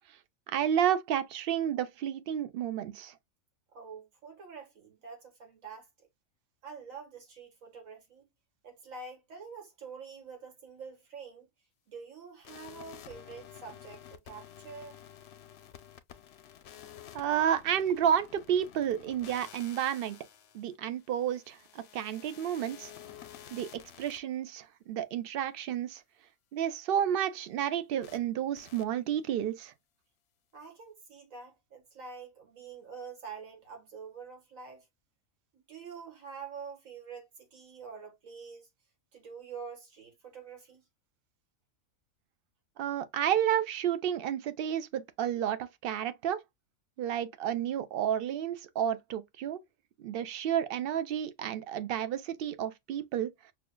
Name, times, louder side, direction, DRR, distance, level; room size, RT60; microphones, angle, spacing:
voice 1, 0.5-3.1 17.1-20.2 20.5-22.9 23.5-23.7 24.0-26.0 26.5-29.7 42.8-46.4 47.0-49.6 50.0-53.3, right 9 dB, 60° right, 0.6 m, -31 dB
voice 2, 3.7-5.9 6.6-8.3 8.6-11.5 11.9-15.0 30.5-34.9 35.5-38.7 39.1-40.8, right 5 dB, 90° right, 1.9 m, -46 dB
sound 1, 12.4-24.2 28.0-28.2 28.6-28.8, left 10 dB, 65° left, 0.7 m, -51 dB
6.0 x 2.3 x 2.2 m
omnidirectional pair, 1.4 m